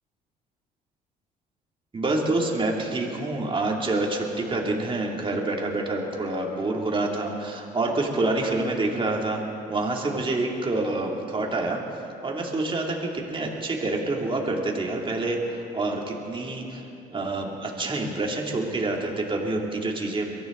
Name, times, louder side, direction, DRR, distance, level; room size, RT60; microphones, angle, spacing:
voice 1, 1.9-9.4 9.7-11.8 12.2-16.8 17.1-20.3, right 2 dB, 30° right, 0 dB, 2.9 m, -27 dB
23.0 x 14.0 x 4.0 m, 2.7 s
supercardioid pair, 75°, 17 cm